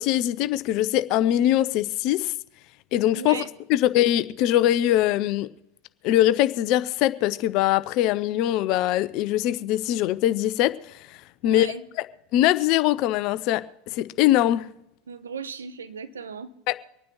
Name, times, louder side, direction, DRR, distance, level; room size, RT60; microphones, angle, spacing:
voice 1, 0.0-2.3 2.9-3.4 3.7-5.5 6.0-10.7 11.4-11.7 12.3-13.6 13.9-14.7 16.7-16.8, left 13 dB, 50° left, 0.7 m, -22 dB
voice 2, 3.1-3.5 11.4-11.8 15.1-16.5, right 6 dB, 80° right, 0.9 m, -36 dB
25.0 x 9.3 x 3.1 m
figure-of-eight pair, 80°, 0 cm